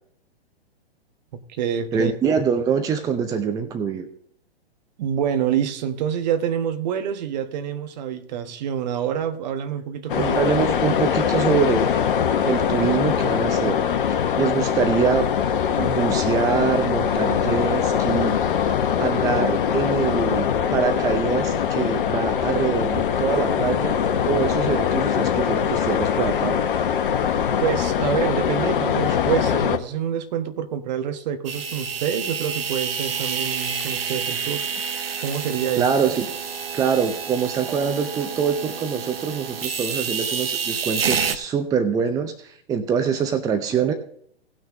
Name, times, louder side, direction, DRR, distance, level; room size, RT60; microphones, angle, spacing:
voice 1, 1.3-2.1 5.0-10.4 27.6-34.7 35.2-35.9, right 9 dB, 45° right, 1.3 m, -26 dB
voice 2, 1.9-4.1 10.1-12.0 12.4-13.8 14.1-15.3 15.8-18.3 19.0-24.0 24.3-26.6 35.8-36.3 36.7-43.9, right 6 dB, 10° right, 0.6 m, -24 dB
sound 1, 10.1-29.8, left 8 dB, 55° left, 1.2 m, -22 dB
sound 2, 31.4-41.4, right 6 dB, 70° right, 1.1 m, -28 dB
18.0 x 6.2 x 3.7 m
figure-of-eight pair, 115°, 31 cm